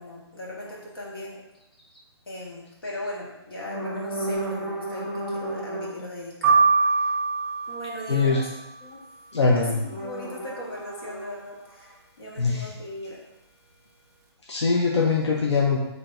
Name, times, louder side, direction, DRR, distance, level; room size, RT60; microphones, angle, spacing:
voice 1, 0.0-1.5 2.2-6.7 7.0-7.1 7.7-8.5 8.8-9.0 9.5-13.2, left 1 dB, 55° left, -4 dB, 1.5 m, -38 dB
sound 1, 0.6-0.8 1.8-2.0 3.6-6.0 9.9-11.9, right 1 dB, 20° left, 0.4 m, -33 dB
sound 2, 6.4-8.6, right 4 dB, 30° right, 0.8 m, -23 dB
voice 2, 9.3-9.8 12.4-12.7 14.5-15.8, left 4 dB, 85° left, -3 dB, 0.8 m, -22 dB
5.7 x 3.3 x 2.6 m, 0.91 s
hypercardioid pair, 180°, 14 cm